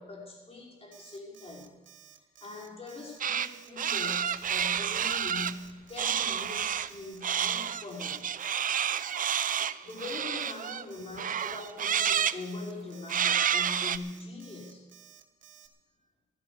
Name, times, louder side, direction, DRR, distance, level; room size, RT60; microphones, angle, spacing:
voice 1, 0.0-1.7 2.4-5.6 5.9-8.3 9.8-14.8, left 2 dB, 30° left, -2 dB, 5.4 m, -42 dB
Alarm, 0.9-15.7, right 10 dB, 70° right, 1.4 m, -55 dB
sound 1, 3.2-3.5 3.8-5.5 6.0-6.9 7.2-10.9 11.2-12.4 13.1-14.0, right 8 dB, 45° right, 0.6 m, -29 dB
sound 2, 4.3-9.3 9.6-9.7, left 2 dB, 90° left, 4.5 m, -60 dB
16.0 x 12.5 x 5.3 m, 1.2 s
cardioid pair, 90°, 20 cm